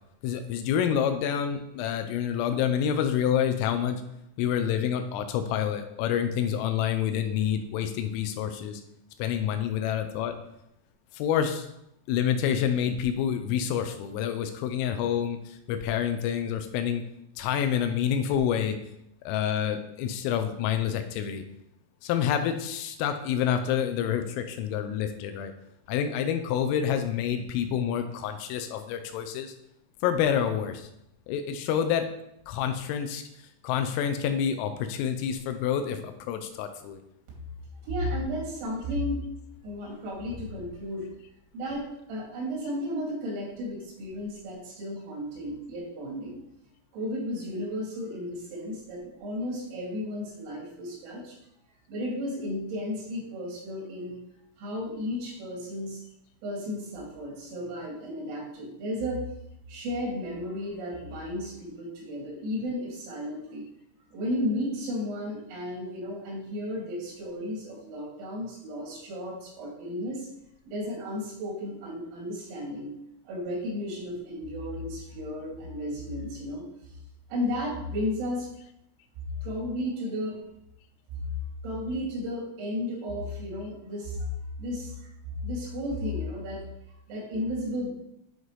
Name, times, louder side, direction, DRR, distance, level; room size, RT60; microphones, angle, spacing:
voice 1, 0.2-4.0 4.4-8.8 9.2-10.4 11.1-11.7 12.1-17.0 17.4-18.8 19.2-21.4 22.0-25.5 25.9-29.5 30.0-30.9 31.3-32.1 32.5-33.2 33.6-37.0, left 9 dB, 85° left, 7 dB, 3.0 m, -28 dB
voice 2, 37.8-39.2 39.6-41.1 41.5-46.4 46.9-51.4 51.9-54.2 54.6-56.0 56.4-59.2 59.7-63.7 64.1-70.3 70.7-73.0 73.3-76.6 77.3-78.5 79.4-80.4 81.6-84.3 84.6-85.1 85.4-86.6 87.1-87.9, left 1 dB, 85° right, -4 dB, 5.2 m, -33 dB
11.0 x 4.0 x 3.1 m, 0.80 s
omnidirectional pair, 6.0 m